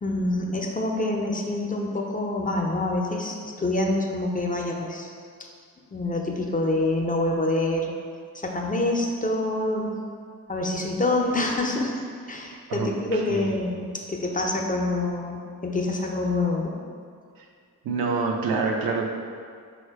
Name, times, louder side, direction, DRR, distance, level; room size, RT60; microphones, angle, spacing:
voice 1, 0.0-5.1 5.9-7.9 8.3-9.9 10.5-11.9 12.3-16.7, left 2 dB, 25° left, 0 dB, 0.6 m, -26 dB
voice 2, 12.7-13.5 17.8-19.1, right 4 dB, 85° right, 1 dB, 0.5 m, -27 dB
3.9 x 2.2 x 4.5 m, 2.1 s
cardioid pair, 50°, 35 cm